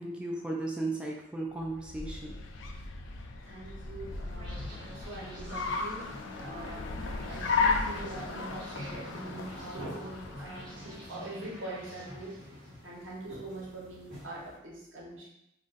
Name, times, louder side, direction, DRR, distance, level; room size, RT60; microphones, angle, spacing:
voice 1, 0.0-2.4 6.3-6.4, right 2 dB, 5° right, -2 dB, 0.3 m, -35 dB
Car, 1.6-11.1, left 4 dB, 90° left, 0.4 m, -35 dB
voice 2, 3.4-12.4 12.8-15.3, right 2 dB, 90° right, -5 dB, 1.0 m, -44 dB
sound 1, 4.3-13.4, equal, 25° right, 1.0 m, -48 dB
Soft Step in Wood, 8.7-14.5, equal, 55° right, 1.3 m, -48 dB
2.4 x 2.3 x 3.9 m, 0.85 s
head